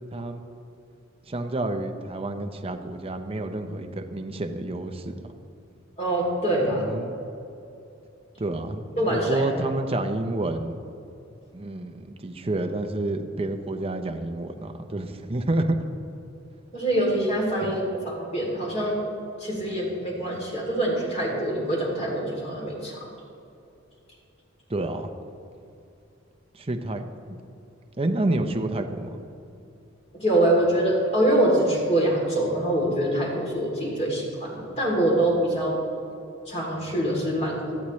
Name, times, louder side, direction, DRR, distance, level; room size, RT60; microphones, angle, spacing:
voice 1, 0.1-0.4 1.3-5.2 6.7-7.2 8.4-10.8 11.5-15.8 17.6-17.8 24.7-25.1 26.5-27.4 28.0-29.2, right 2 dB, 30° right, 5 dB, 0.8 m, -29 dB
voice 2, 6.0-6.9 9.0-9.4 16.7-19.0 19.4-23.0 30.1-35.8 36.5-37.8, right 1 dB, 30° left, -3 dB, 3.1 m, -24 dB
17.0 x 13.0 x 3.2 m, 2.7 s
head